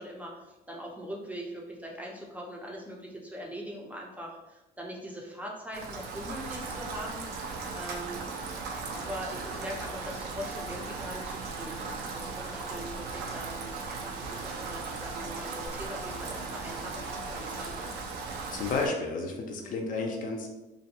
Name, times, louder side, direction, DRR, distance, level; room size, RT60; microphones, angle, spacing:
voice 1, 0.0-7.3 7.7-8.2 8.9-17.9 19.6-19.8, equal, 10° right, -2 dB, 0.4 m, -41 dB
Rain, 5.7-18.9, right 4 dB, 85° right, 0.4 m, -37 dB
voice 2, 18.5-20.5, left 3 dB, 55° left, 2 dB, 0.4 m, -31 dB
2.5 x 2.1 x 2.7 m, 1.0 s
cardioid pair, 110°, 17 cm